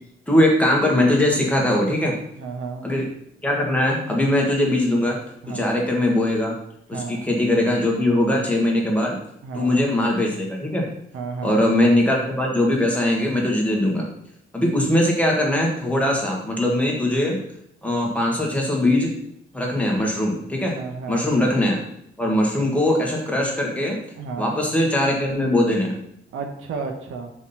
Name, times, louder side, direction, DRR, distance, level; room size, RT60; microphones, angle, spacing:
voice 1, 0.3-2.2 2.8-3.1 3.4-5.2 5.5-6.6 6.9-9.2 9.5-10.9 11.4-14.0 14.5-17.4 17.8-19.1 19.5-20.8 21.1-21.8 22.2-24.0 24.4-25.9, left 1 dB, 5° left, -1 dB, 1.6 m, -21 dB
voice 2, 2.3-2.9 5.4-5.7 6.9-7.2 9.4-9.8 11.1-11.6 20.7-21.3 24.1-24.6 26.3-27.3, right 4 dB, 85° right, 4 dB, 1.2 m, -32 dB
6.0 x 4.2 x 5.6 m, 0.75 s
cardioid pair, 140°, 21 cm